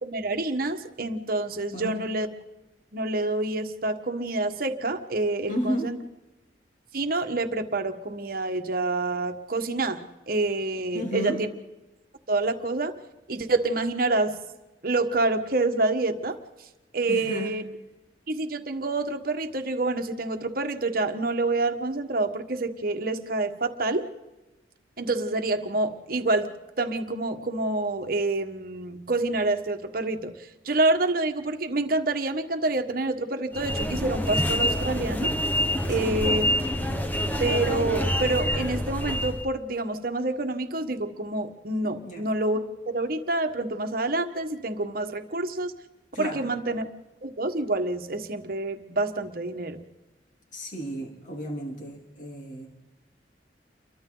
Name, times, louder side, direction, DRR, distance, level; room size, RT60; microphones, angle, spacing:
voice 1, 0.0-2.3 2.9-6.0 6.9-10.0 10.3-11.5 12.3-12.9 13.3-14.3 14.8-16.4 16.9-17.6 18.3-24.1 25.0-30.3 30.6-35.3 35.9-36.5 37.4-42.6 42.9-45.7 46.2-46.9 47.2-49.8, right 2 dB, 55° right, 6 dB, 1.5 m, -27 dB
voice 2, 1.7-2.1 5.5-5.9 10.9-11.4 17.1-17.5 35.9-36.5 42.0-42.2 46.1-46.4 50.5-52.7, equal, 45° left, 0 dB, 3.2 m, -33 dB
sound 1, 33.5-39.5, left 1 dB, 10° left, 1.3 m, -26 dB
29.5 x 23.5 x 4.0 m, 1.1 s
head